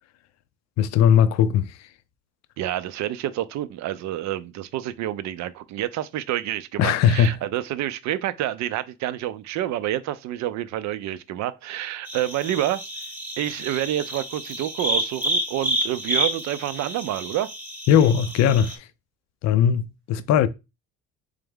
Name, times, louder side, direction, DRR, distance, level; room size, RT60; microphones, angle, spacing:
voice 1, 0.8-1.7 6.8-7.4 17.9-18.9 19.4-20.5, left 8 dB, 55° left, 0.5 m, -19 dB
voice 2, 2.6-12.8 13.4-17.5, right 13 dB, 60° right, 0.5 m, -28 dB
sound 1, 12.1-18.8, right 1 dB, 5° right, 1.0 m, -29 dB
3.5 x 3.3 x 3.5 m
supercardioid pair, 75°, 32 cm